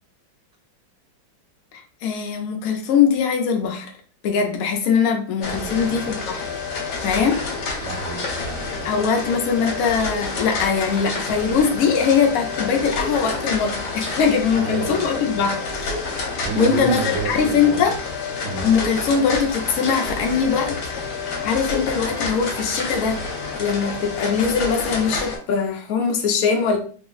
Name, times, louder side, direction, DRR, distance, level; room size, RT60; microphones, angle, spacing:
voice 1, 1.7-3.9 4.2-6.5 7.0-7.4 8.8-16.0 16.6-17.9 18.6-20.8 21.4-23.2 23.6-26.8, left 6 dB, 90° left, 3 dB, 0.7 m, -21 dB
sound 1, 5.4-25.4, left 3 dB, 65° left, 1.3 m, -29 dB
voice 2, 5.5-5.9 7.8-9.0 14.5-15.1 16.4-17.9 18.4-18.7, right 4 dB, 70° right, 0 dB, 1.2 m, -30 dB
3.3 x 2.0 x 3.7 m, 0.43 s
omnidirectional pair, 2.2 m